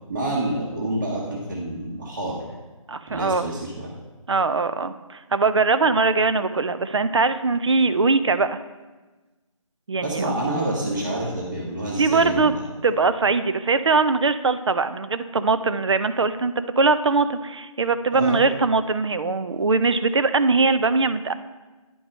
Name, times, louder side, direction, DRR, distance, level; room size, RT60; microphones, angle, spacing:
voice 1, 0.1-2.4 3.1-3.9 10.0-12.6 18.1-18.4, right 1 dB, 35° right, -5 dB, 1.2 m, -28 dB
voice 2, 2.9-3.5 4.3-8.6 9.9-10.3 12.0-12.5 12.8-21.3, right 4 dB, 55° right, 12 dB, 0.5 m, -21 dB
10.0 x 4.6 x 5.3 m, 1.2 s
figure-of-eight pair, 170°, 18 cm